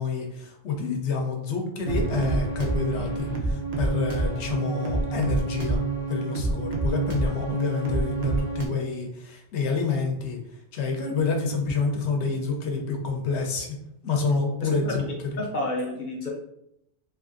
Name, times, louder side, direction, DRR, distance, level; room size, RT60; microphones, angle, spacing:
voice 1, 0.0-5.8 6.1-10.4 10.7-13.7 14.0-15.1, left 4 dB, 75° left, 2 dB, 0.9 m, -28 dB
sound 1, 1.8-8.7, right 3 dB, 50° right, 0.5 m, -27 dB
voice 2, 14.6-14.9 15.4-16.3, left 1 dB, 60° left, -1 dB, 0.5 m, -30 dB
2.9 x 2.4 x 2.5 m, 0.79 s
omnidirectional pair, 1.2 m